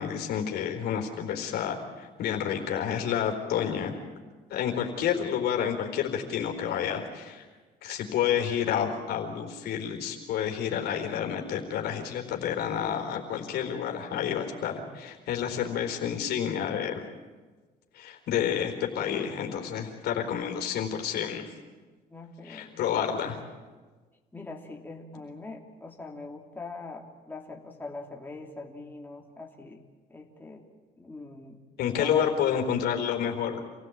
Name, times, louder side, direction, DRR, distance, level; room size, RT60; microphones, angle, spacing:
voice 1, 0.0-4.0 4.5-7.4 7.8-17.0 17.9-21.5 22.4-23.4 31.8-33.6, left 8 dB, 75° left, 3 dB, 4.2 m, -29 dB
voice 2, 22.1-23.5 24.3-29.8 30.1-30.7 31.0-31.6 31.9-32.3, left 3 dB, 10° left, 0 dB, 3.0 m, -42 dB
27.5 x 16.5 x 8.7 m, 1.3 s
cardioid pair, 110°, 17 cm